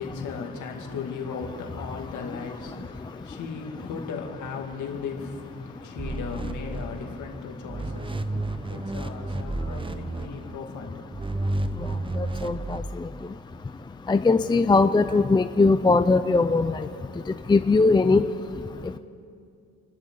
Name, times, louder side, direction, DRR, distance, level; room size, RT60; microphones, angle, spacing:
voice 1, 0.0-11.3, left 5 dB, 75° left, 2 dB, 2.3 m, -37 dB
sound 1, 6.0-7.4 7.7-10.6 11.1-12.8, right 2 dB, 15° right, 0.8 m, -31 dB
voice 2, 12.2-12.8 14.1-16.9 17.5-18.2, left 3 dB, 15° left, 10 dB, 0.5 m, -20 dB
29.0 x 12.5 x 3.9 m, 2.4 s
cardioid pair, 90°, 30 cm